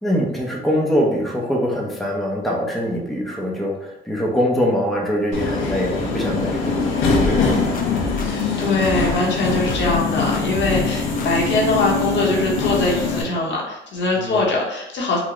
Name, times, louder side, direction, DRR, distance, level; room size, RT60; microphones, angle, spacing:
voice 1, 0.0-7.8 14.2-14.4, equal, ahead, -2 dB, 0.7 m, -23 dB
Subway metro underground, 5.3-13.2, left 4 dB, 85° left, 0.8 m, -22 dB
sound 1, 7.1-9.2 9.7-10.0 10.3-10.9 11.2-11.3, left 4 dB, 45° left, 0.5 m, -29 dB
voice 2, 8.2-15.2, left 2 dB, 65° left, -2 dB, 1.1 m, -22 dB
4.0 x 2.2 x 3.0 m, 0.87 s
cardioid pair, 90°, 20 cm